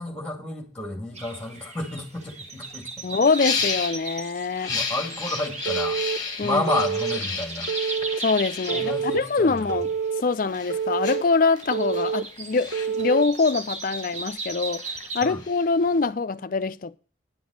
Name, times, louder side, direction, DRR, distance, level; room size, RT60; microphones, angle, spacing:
voice 1, 0.0-3.1 3.6-3.7 4.7-6.0 6.4-7.7 8.7-9.8 15.2-15.4, left 2 dB, 5° left, 2.4 m, -31 dB
sound 1, 1.2-15.3, right 3 dB, 35° right, 1.6 m, -38 dB
sound 2, 2.1-2.2 2.5-2.7 3.2-4.0 4.5-9.8 10.3-16.0, left 5 dB, 20° left, 1.6 m, -33 dB
voice 2, 3.0-4.7 6.4-6.7 8.2-9.9 10.2-14.8 15.1-17.0, left 4 dB, 50° left, 0.5 m, -24 dB
Telephone, 5.6-6.2 6.7-7.2 7.7-8.2 8.7-9.2 9.7-10.2 10.7-11.2 11.7-12.2 12.7-13.2, right 6 dB, 60° right, 1.0 m, -27 dB
10.5 x 6.2 x 6.3 m
head